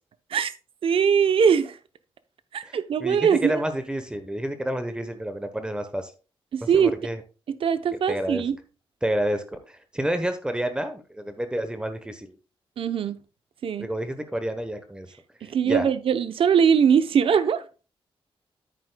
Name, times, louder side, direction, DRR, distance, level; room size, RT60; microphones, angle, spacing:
voice 1, 0.8-1.8 2.5-3.6 6.5-6.9 7.5-8.6 12.8-13.2 13.6-13.9 15.4-17.6, right 7 dB, 65° right, 0.7 m, -21 dB
voice 2, 2.6-6.1 6.7-7.2 7.9-8.4 9.0-12.4 13.8-15.1 15.4-15.9, right 1 dB, 10° right, 0.9 m, -29 dB
9.9 x 9.0 x 2.3 m
wide cardioid pair, 130°, 10 cm